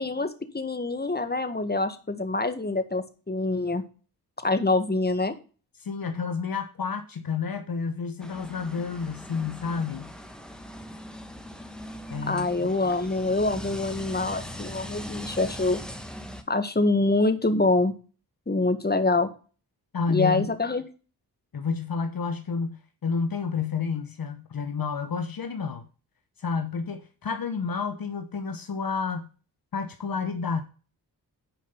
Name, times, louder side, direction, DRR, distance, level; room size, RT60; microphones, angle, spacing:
voice 1, 0.0-3.8 4.4-5.3 12.3-15.8 16.5-17.9 18.5-19.3 20.1-20.8, left 2 dB, 25° left, 1.7 m, -25 dB
voice 2, 5.8-10.1 12.1-12.7 19.9-20.5 21.5-25.8 26.4-29.3 29.7-30.6, left 5 dB, 60° left, 1.1 m, -30 dB
sound 1, 8.2-16.4, equal, ahead, 1.8 m, -40 dB
10.0 x 5.3 x 5.4 m
cardioid pair, 50°, 40 cm